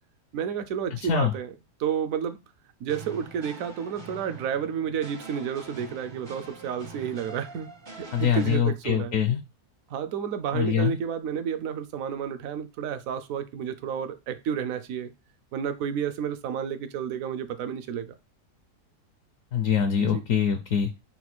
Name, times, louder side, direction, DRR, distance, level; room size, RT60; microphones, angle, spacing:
voice 1, 0.3-1.5 1.8-2.4 2.8-7.7 8.0-9.2 9.9-15.1 15.5-18.1 20.0-20.2, right 8 dB, 70° right, 0.9 m, -31 dB
voice 2, 1.0-1.3 8.1-9.4 10.5-11.0 19.5-20.9, left 8 dB, 70° left, 0.9 m, -24 dB
sound 1, 2.9-8.6, right 3 dB, 30° right, 0.5 m, -44 dB
4.2 x 2.3 x 4.2 m
omnidirectional pair, 1.6 m